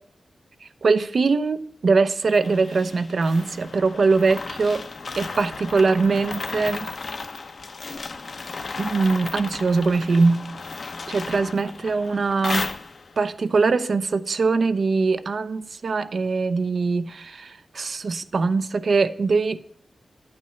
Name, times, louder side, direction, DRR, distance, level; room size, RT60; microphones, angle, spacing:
voice 1, 0.6-4.8 5.2-6.9 8.8-10.5 11.1-12.7 13.2-19.6, right 4 dB, 65° right, 0.7 m, -22 dB
sound 1, 2.3-13.3, left 4 dB, 55° left, 0.9 m, -34 dB
10.5 x 8.9 x 5.7 m
wide cardioid pair, 120°, 0 cm